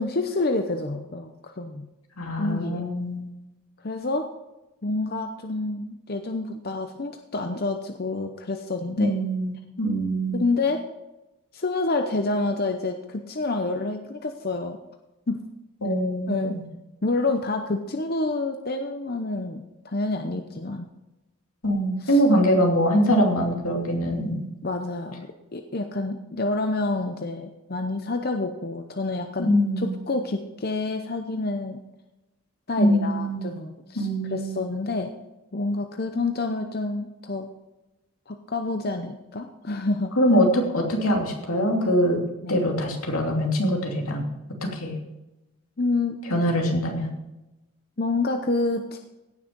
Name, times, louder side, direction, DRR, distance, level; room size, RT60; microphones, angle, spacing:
voice 1, 0.0-1.9 2.4-2.9 3.8-4.3 4.8-9.1 10.3-10.9 11.5-14.8 15.3-15.4 16.3-16.6 17.0-20.9 22.0-22.2 24.6-31.8 32.7-35.1 35.5-37.5 38.3-40.1 42.4-42.6 45.8-46.2 48.0-49.0, left 2 dB, 45° left, 5 dB, 0.7 m, -28 dB
voice 2, 2.2-3.3 9.0-10.4 15.8-16.6 21.6-24.5 29.4-29.9 32.8-33.5 34.0-34.6 40.2-42.2 42.5-44.3 44.6-45.0 46.3-47.1, equal, 85° left, 1 dB, 2.8 m, -23 dB
16.5 x 6.3 x 5.3 m, 0.99 s
head